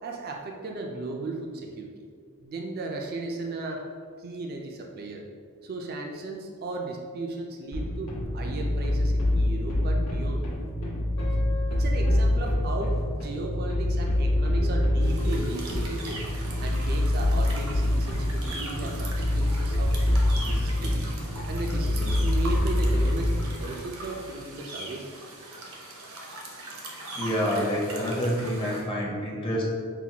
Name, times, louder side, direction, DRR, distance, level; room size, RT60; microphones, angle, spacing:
voice 1, 0.0-1.9 2.4-3.8 4.2-5.2 5.6-10.5 11.7-16.2 16.6-19.9 20.4-21.1 21.5-23.3 23.6-25.1, right 2 dB, 45° right, 1 dB, 0.3 m, -35 dB
sound 1, 7.7-23.6, left 1 dB, 85° left, 0.9 m, -25 dB
Guitar, 11.2-13.6 14.3-16.3, left 2 dB, 55° left, 1.1 m, -42 dB
sound 2, 15.0-28.8, right 2 dB, 70° right, 0.7 m, -41 dB
voice 2, 27.1-29.6, equal, 25° left, -3 dB, 0.6 m, -27 dB
5.7 x 2.2 x 2.8 m, 2.1 s
head